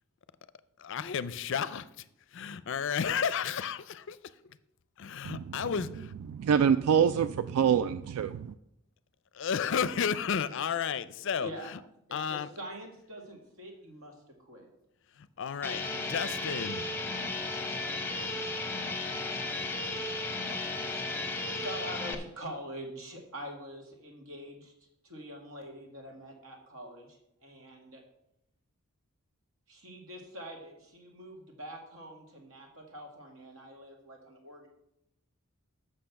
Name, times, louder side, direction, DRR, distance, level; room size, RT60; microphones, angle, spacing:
voice 1, 0.8-2.0 2.3-4.2 5.0-6.1 9.3-11.8 12.1-12.5 15.2-16.9, left 7 dB, 55° left, 0.4 m, -32 dB
voice 2, 6.3-8.5, right 7 dB, 85° right, 0.3 m, -26 dB
voice 3, 11.4-11.7 12.1-14.1 14.4-14.7 21.5-24.7 25.0-28.0 29.7-34.7, equal, 65° right, 2.1 m, -45 dB
sound 1, 15.6-22.2, left 2 dB, 10° left, 0.8 m, -34 dB
7.7 x 6.5 x 5.8 m
head